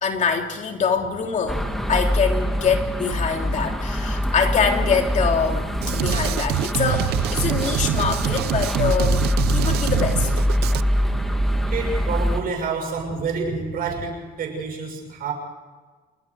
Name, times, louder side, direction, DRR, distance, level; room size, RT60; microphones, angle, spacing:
voice 1, 0.0-1.6 1.9-10.3, left 6 dB, 45° left, 3 dB, 3.0 m, -24 dB
sound 1, 1.5-12.4, equal, ahead, 2.1 m, -24 dB
Drum kit, 5.8-10.8, right 15 dB, 75° right, 0.6 m, -25 dB
voice 2, 11.7-15.3, right 4 dB, 60° right, 2 dB, 7.1 m, -28 dB
28.5 x 20.0 x 5.0 m, 1.4 s
cardioid pair, 110°, 17 cm